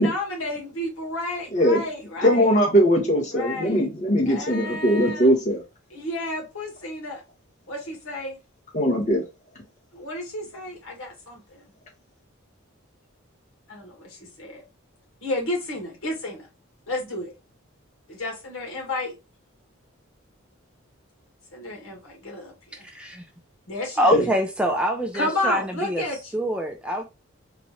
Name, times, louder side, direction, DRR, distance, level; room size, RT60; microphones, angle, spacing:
voice 1, 0.0-2.5 3.3-3.8 4.3-5.3 5.9-7.2 7.7-8.4 9.9-11.6 13.7-14.6 15.2-16.5 16.9-17.3 18.1-19.1 21.5-22.8 23.7-24.3 25.1-26.3, left 1 dB, 80° left, 1.6 m, -31 dB
voice 2, 1.5-1.8 2.2-5.6 8.7-9.2 24.1-24.2, equal, 35° left, 1.3 m, -20 dB
voice 3, 22.9-23.2 24.0-26.0 26.3-27.0, equal, 5° right, 0.4 m, -25 dB
4.0 x 2.5 x 3.0 m
head